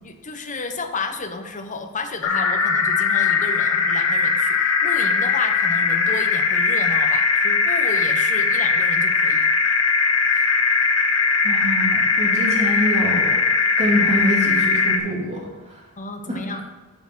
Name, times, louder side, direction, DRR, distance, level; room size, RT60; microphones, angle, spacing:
voice 1, 0.0-9.5 10.3-10.4 16.0-16.6, left 3 dB, 35° left, 6 dB, 0.9 m, -32 dB
sound 1, 2.2-15.0, left 5 dB, 65° left, 1.3 m, -19 dB
voice 2, 11.4-13.4 13.8-15.4 15.7-15.8 16.3-16.6, equal, 30° right, -3 dB, 2.6 m, -25 dB
9.3 x 5.9 x 5.9 m, 1.3 s
head